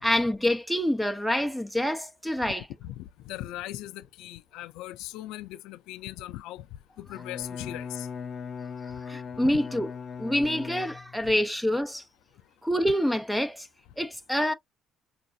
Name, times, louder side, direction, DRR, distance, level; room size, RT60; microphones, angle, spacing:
voice 1, 0.0-2.7 9.1-9.9 10.2-12.0 12.6-13.7 14.0-14.5, equal, ahead, 0.5 m, -26 dB
voice 2, 2.8-6.7 7.0-8.1 9.4-9.6, left 15 dB, 90° left, 0.3 m, -39 dB
Bowed string instrument, 7.1-11.3, left 6 dB, 40° left, 0.8 m, -39 dB
4.7 x 2.4 x 2.6 m
cardioid pair, 140°, 0 cm